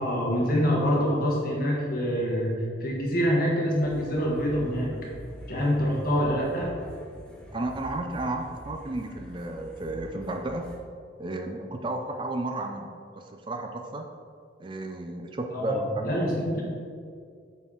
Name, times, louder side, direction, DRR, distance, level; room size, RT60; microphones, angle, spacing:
voice 1, 0.0-4.9 5.5-6.7 15.5-16.6, equal, 50° left, -3 dB, 1.4 m, -26 dB
sound 1, 3.7-10.8, equal, 5° left, 0.8 m, -46 dB
voice 2, 7.5-10.7 11.2-14.0 14.6-16.2, right 2 dB, 25° right, 4 dB, 0.4 m, -33 dB
8.0 x 4.1 x 3.8 m, 2.3 s
head